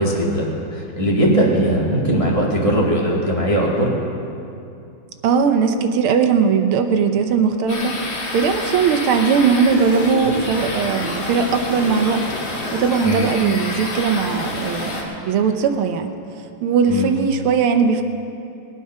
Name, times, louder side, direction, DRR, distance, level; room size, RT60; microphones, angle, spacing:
voice 1, 0.0-3.9 13.0-13.3 16.9-17.1, right 1 dB, 20° right, -4 dB, 1.4 m, -19 dB
voice 2, 5.2-7.9 8.3-12.2 12.7-14.9 15.2-16.1 16.6-18.0, right 6 dB, 85° right, 7 dB, 1.8 m, -19 dB
sound 1, 7.7-15.0, left 2 dB, 75° left, 3.0 m, -28 dB
21.0 x 8.6 x 5.5 m, 2.6 s
omnidirectional pair, 2.3 m